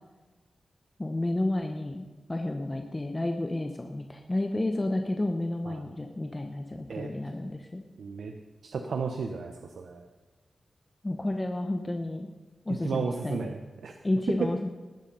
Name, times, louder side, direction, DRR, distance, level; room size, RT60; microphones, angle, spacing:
voice 1, 1.0-7.9 11.0-12.3 12.7-13.4 14.0-14.7, left 1 dB, 20° left, 4 dB, 0.9 m, -31 dB
voice 2, 8.0-8.3 8.6-10.0 12.7-13.9 14.4-14.5, right 5 dB, 90° right, 5 dB, 0.8 m, -33 dB
18.5 x 7.3 x 5.5 m, 1.3 s
wide cardioid pair, 105°, 0 cm